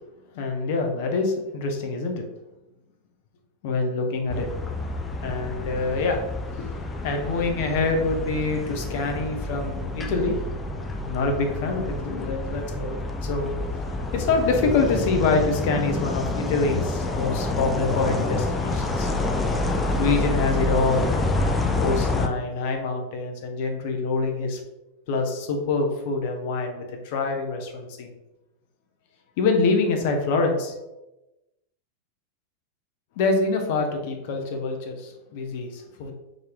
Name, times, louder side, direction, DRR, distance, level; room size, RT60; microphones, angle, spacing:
voice 1, 0.3-2.2 3.6-4.5 5.2-6.2 7.0-10.4 11.1-13.5 14.1-19.1 20.0-21.1 21.8-24.6 25.1-28.1 29.4-30.8 33.2-36.1, left 3 dB, 50° left, 3 dB, 0.7 m, -25 dB
sound 1, 4.3-22.3, left 2 dB, 15° left, 0.4 m, -28 dB
3.7 x 2.7 x 3.3 m, 0.98 s
figure-of-eight pair, 90°, 0 cm